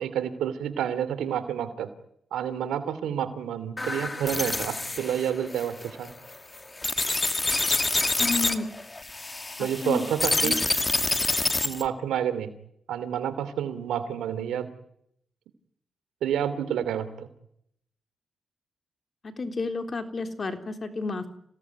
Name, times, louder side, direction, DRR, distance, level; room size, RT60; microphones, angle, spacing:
voice 1, 0.0-1.9 2.3-6.1 9.6-10.6 11.6-12.5 12.9-14.7 16.2-17.3, right 9 dB, 90° right, 13 dB, 2.8 m, -29 dB
sound 1, 3.8-11.9, left 2 dB, 25° left, 2.2 m, -27 dB
voice 2, 8.2-8.7 9.6-10.0 10.4-10.5 19.2-21.3, left 3 dB, 40° left, 7 dB, 3.7 m, -31 dB
28.0 x 18.0 x 9.5 m, 0.74 s
cardioid pair, 65°, 0 cm